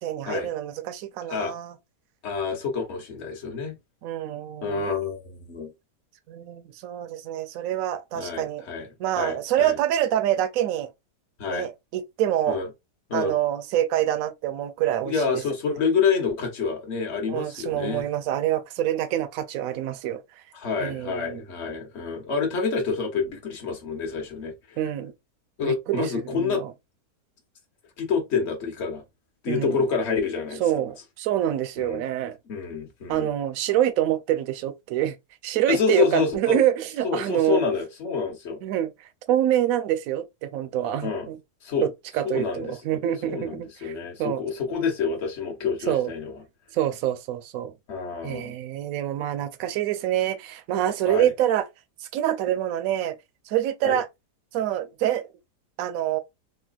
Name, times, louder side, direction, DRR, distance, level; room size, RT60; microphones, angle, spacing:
voice 1, 0.0-1.7 4.0-4.8 6.3-8.6 9.0-10.9 11.5-12.6 13.1-15.4 17.3-20.2 20.8-21.4 24.8-25.1 25.6-26.7 29.5-29.8 30.6-32.4 33.1-35.2 35.4-37.6 38.6-38.9 39.3-41.4 41.8-41.9 42.1-43.9 44.2-44.4 45.9-46.1 46.7-47.7 48.2-51.7 52.0-53.1 53.5-54.1 54.5-55.2 55.8-56.2, right 11 dB, 70° right, 0.9 m, -26 dB
voice 2, 2.2-3.7 4.6-5.7 8.1-9.8 11.4-11.7 12.5-12.7 13.1-13.3 15.0-18.1 20.5-24.8 25.6-26.6 28.0-29.0 29.4-30.6 31.8-32.0 32.5-33.3 35.7-36.6 37.0-38.6 41.0-41.3 41.6-41.9 42.2-42.8 43.3-46.4 47.9-48.6 51.1-51.3 53.8-54.0, left 5 dB, 50° left, 1.1 m, -28 dB
3.9 x 2.2 x 2.4 m
omnidirectional pair, 1.7 m